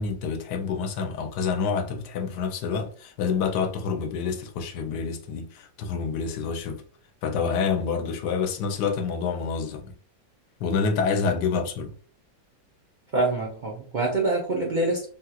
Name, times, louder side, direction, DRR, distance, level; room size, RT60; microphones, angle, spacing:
voice 1, 0.0-6.8 7.2-9.9 10.6-11.9, left 5 dB, 85° left, 1.2 m, -27 dB
voice 2, 13.1-15.1, right 2 dB, 70° right, 0.4 m, -25 dB
3.5 x 2.8 x 2.3 m
omnidirectional pair, 1.8 m